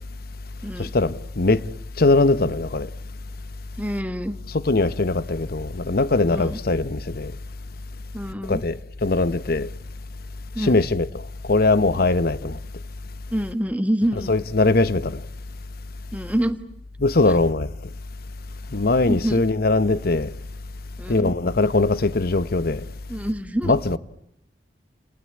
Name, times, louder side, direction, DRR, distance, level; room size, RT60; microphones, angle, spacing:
voice 1, 0.8-1.6 2.0-2.9 4.5-7.3 8.5-9.7 10.6-11.1 11.5-12.6 14.3-15.2 17.0-17.7 18.7-20.3 21.1-22.8 23.7-24.0, left 3 dB, 60° left, 0.9 m, -21 dB
voice 2, 3.8-4.4 6.3-6.6 8.1-8.6 10.5-10.8 13.3-14.3 16.1-16.6 17.2-17.4 18.7-19.4 21.0-21.3 23.1-23.8, equal, 10° right, 1.4 m, -26 dB
29.5 x 19.0 x 8.7 m
head